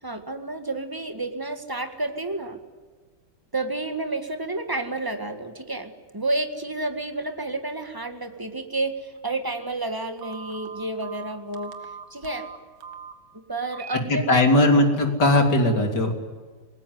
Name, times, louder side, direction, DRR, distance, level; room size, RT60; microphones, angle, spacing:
voice 1, 0.0-2.6 3.5-11.7 12.1-12.5 13.3-14.6, right 2 dB, 10° right, 7 dB, 1.8 m, -30 dB
Telephone, 10.2-13.1 13.7-14.0 14.4-14.7, right 6 dB, 70° right, 2.2 m, -40 dB
voice 2, 14.1-16.1, left 1 dB, 55° left, 4 dB, 3.8 m, -19 dB
27.5 x 19.5 x 9.6 m, 1.5 s
omnidirectional pair, 2.3 m